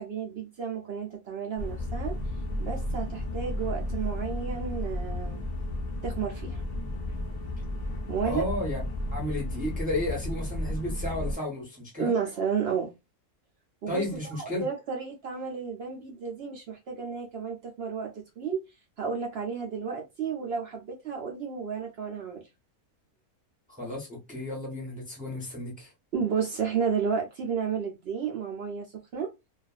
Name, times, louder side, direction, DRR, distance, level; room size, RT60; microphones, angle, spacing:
voice 1, 0.0-2.1 2.6-5.4 6.0-6.6 8.1-8.5 12.0-12.9 13.8-18.6 19.0-22.4 26.1-28.9 29.1-29.3, right 6 dB, 70° right, 0.6 m, -32 dB
sound 1, 1.6-11.3, left 1 dB, 70° left, 0.4 m, -33 dB
voice 2, 8.2-8.8 9.1-12.1 13.9-14.7 23.7-25.9, left 1 dB, 10° right, 0.6 m, -33 dB
2.5 x 2.4 x 2.3 m
omnidirectional pair, 1.6 m